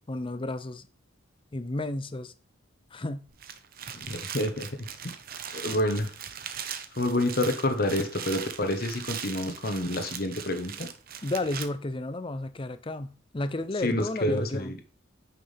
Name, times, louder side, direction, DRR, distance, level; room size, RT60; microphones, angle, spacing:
voice 1, 0.1-0.9 1.5-2.3 2.9-3.3 11.2-14.7, left 2 dB, 25° left, 0.6 m, -32 dB
sound 1, 3.3-11.7, right 8 dB, 50° right, 0.9 m, -40 dB
voice 2, 3.9-4.7 5.5-6.1 7.0-10.9 13.8-14.8, left 1 dB, 50° left, 1.3 m, -28 dB
9.6 x 5.8 x 3.4 m
head